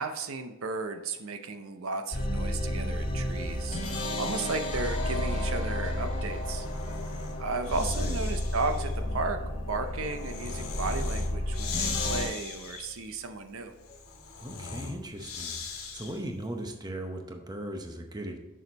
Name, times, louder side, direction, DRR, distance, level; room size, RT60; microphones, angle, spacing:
voice 1, 0.0-3.8 4.2-6.7 7.4-9.4 9.7-13.7, right 3 dB, 65° right, 7 dB, 0.6 m, -34 dB
sound 1, 2.1-12.3, left 1 dB, 35° left, 2.5 m, -32 dB
Breathing, 2.9-4.9 6.1-16.4, left 5 dB, 70° left, 1.5 m, -41 dB
voice 2, 7.9-8.2 14.4-18.4, right 1 dB, 15° right, 3 dB, 0.8 m, -38 dB
6.7 x 6.4 x 4.1 m, 1.1 s
head